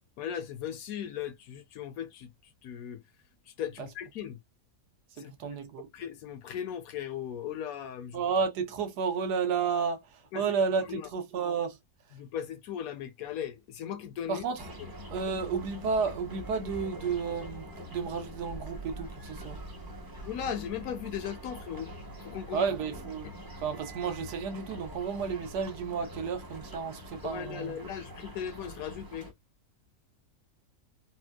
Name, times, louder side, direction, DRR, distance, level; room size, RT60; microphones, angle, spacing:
voice 1, 0.2-2.3 2.6-3.0 3.6-4.4 5.2-5.3 5.9-8.2 10.3-10.4 10.9-11.1 12.1-14.4 20.3-21.9 22.2-22.7 27.2-29.3, left 9 dB, 70° left, 0.9 m, -37 dB
voice 2, 5.2-5.9 8.1-11.8 14.3-14.7 15.1-17.6 17.9-19.6 22.5-23.3 23.6-27.9, right 5 dB, 85° right, 1.3 m, -32 dB
sound 1, 14.6-29.3, equal, 25° right, 0.5 m, -44 dB
4.2 x 2.2 x 2.2 m
omnidirectional pair, 1.7 m